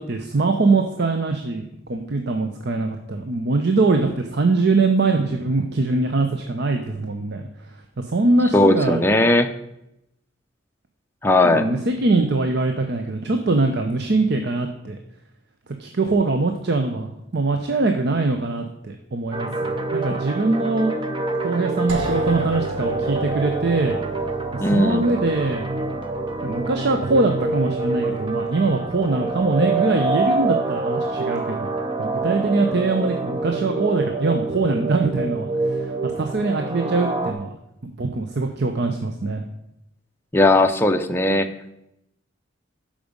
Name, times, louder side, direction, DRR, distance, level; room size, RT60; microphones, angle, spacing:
voice 1, 0.0-7.5 8.0-9.0 11.5-15.0 15.8-21.0 21.4-24.0 24.7-25.6 26.4-31.7 32.0-35.5 36.0-37.6 37.8-39.4, right 3 dB, 60° right, 5 dB, 0.7 m, -22 dB
voice 2, 8.5-9.5 11.2-11.7 24.6-25.0 40.3-41.5, left 2 dB, 10° left, 5 dB, 0.6 m, -17 dB
sound 1, 19.3-37.3, right 3 dB, 25° right, 0.8 m, -26 dB
sound 2, 21.9-31.7, right 1 dB, 75° right, 1.2 m, -35 dB
12.0 x 5.1 x 5.2 m, 0.83 s
head